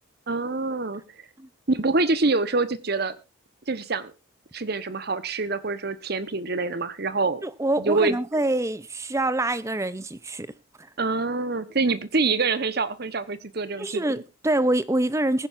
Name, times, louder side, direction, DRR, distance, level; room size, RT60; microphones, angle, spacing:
voice 1, 0.3-1.0 1.7-3.2 3.7-4.1 4.5-7.4 7.8-8.2 11.0-14.2, right 3 dB, 55° right, 1.1 m, -25 dB
voice 2, 7.4-10.5 13.8-15.5, right 1 dB, 15° right, 0.7 m, -25 dB
20.0 x 10.0 x 2.6 m
head